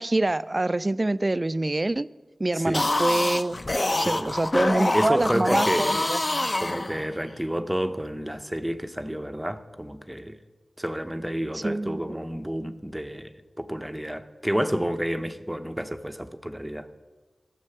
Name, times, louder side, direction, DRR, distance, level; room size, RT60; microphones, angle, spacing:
voice 1, 0.0-2.1 2.4-3.6 3.9-6.5 11.6-12.2, right 2 dB, 35° right, 0.3 m, -26 dB
voice 2, 2.5-2.9 4.0-4.3 4.9-6.1 6.6-10.4 10.8-16.9, equal, 10° right, 0.7 m, -30 dB
sound 1, 2.6-7.3, left 2 dB, 35° left, 0.7 m, -26 dB
13.0 x 7.4 x 6.8 m
wide cardioid pair, 65°, 0 cm